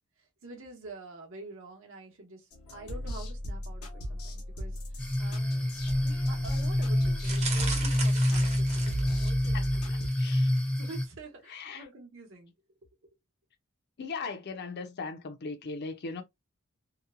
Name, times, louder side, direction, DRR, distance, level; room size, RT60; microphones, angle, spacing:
voice 1, 0.2-5.5 6.0-9.9 10.2-10.3 10.8-12.5 12.8-13.0, right 2 dB, 65° right, 0.9 m, -47 dB
sound 1, 2.5-10.1, right 1 dB, 90° left, 1.0 m, -37 dB
sound 2, 5.0-11.1, left 1 dB, 5° left, 0.6 m, -27 dB
sound 3, 7.2-9.5 10.0-10.3 10.6-10.7, right 4 dB, 30° right, 0.8 m, -37 dB
voice 2, 10.2-10.5 11.5-11.9 14.0-16.2, left 4 dB, 50° left, 0.5 m, -38 dB
2.9 x 2.1 x 2.4 m
head